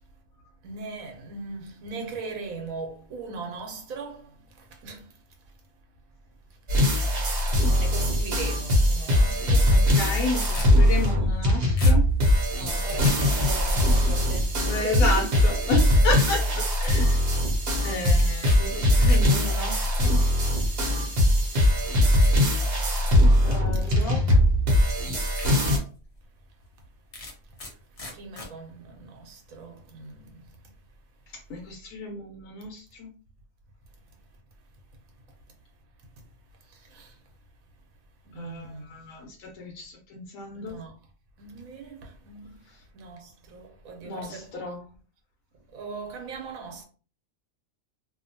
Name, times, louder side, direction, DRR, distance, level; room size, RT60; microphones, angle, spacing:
voice 1, 0.6-4.3 4.7-5.1 7.7-10.2 12.5-16.0 18.7-18.8 23.8-24.6 28.1-30.3 36.9-37.1 38.2-38.8 40.5-40.9 41.4-42.5 42.9-44.5 45.7-46.8, right 4 dB, 85° right, 1.1 m, -39 dB
sound 1, 6.7-25.8, left 1 dB, 55° right, 0.9 m, -21 dB
voice 2, 9.7-12.0 14.7-17.2 17.8-20.2 21.8-22.1 22.4-22.6 23.4-24.2 31.5-33.1 38.4-40.8 44.0-44.8, left 2 dB, 80° left, 1.1 m, -32 dB
sound 2, 10.4-11.5 11.8-13.2 18.2-18.6 18.9-19.9 20.8-20.9 21.5-21.6 22.2-22.4 22.9-23.3 24.4-24.5 25.0-25.1 25.4-25.6 26.0-26.1 27.1-27.7 28.0-28.5, left 1 dB, 45° left, 0.5 m, -38 dB
2.7 x 2.2 x 2.6 m
omnidirectional pair, 1.4 m